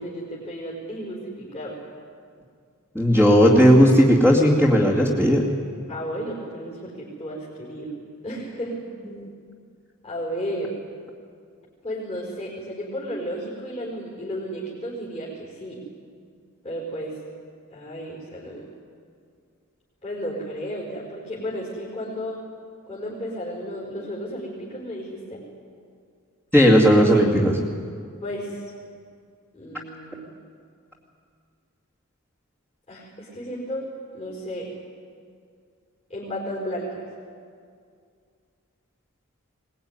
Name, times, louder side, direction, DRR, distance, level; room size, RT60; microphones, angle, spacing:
voice 1, 0.0-1.8 5.9-8.0 8.2-8.8 10.0-10.7 11.8-15.8 16.6-17.2 17.7-18.7 20.0-22.4 22.9-25.4 28.2-28.6 29.5-30.2 32.9-33.9 34.1-34.7 36.1-37.0, equal, 30° left, -5 dB, 4.9 m, -33 dB
voice 2, 2.9-5.4 9.1-9.3 26.5-27.6, equal, 5° left, -6 dB, 2.5 m, -16 dB
22.5 x 20.0 x 9.7 m, 2.2 s
head